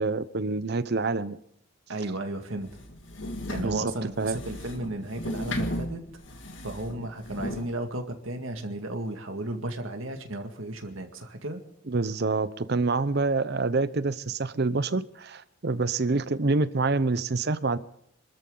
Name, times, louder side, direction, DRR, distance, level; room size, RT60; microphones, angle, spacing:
voice 1, 0.0-1.4 3.6-3.8 4.2-4.4 11.9-17.8, right 3 dB, 55° right, 0.8 m, -27 dB
voice 2, 1.9-2.7 3.5-6.0 6.6-11.6 16.1-16.2, right 1 dB, 80° right, 2.0 m, -34 dB
sound 1, 2.7-7.7, left 1 dB, 65° left, 2.1 m, -35 dB
26.5 x 13.5 x 3.9 m
head